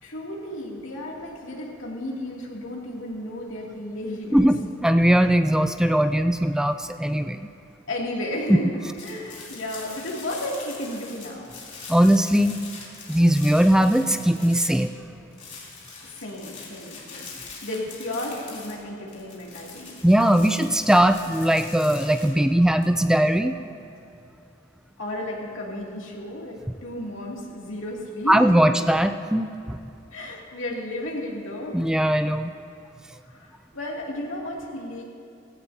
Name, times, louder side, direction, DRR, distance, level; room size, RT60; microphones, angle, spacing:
voice 1, 0.0-4.5 7.9-11.5 16.2-20.0 25.0-28.8 30.1-31.8 33.2-35.0, left 1 dB, 80° left, -3 dB, 2.5 m, -33 dB
voice 2, 4.3-7.5 11.9-12.5 13.1-14.9 20.0-23.6 28.3-29.8 31.7-32.5, right 1 dB, 5° right, 8 dB, 0.3 m, -20 dB
sound 1, 9.0-15.0 15.3-22.9, left 4 dB, 40° left, 3.2 m, -43 dB
18.5 x 16.0 x 2.8 m, 2.7 s
head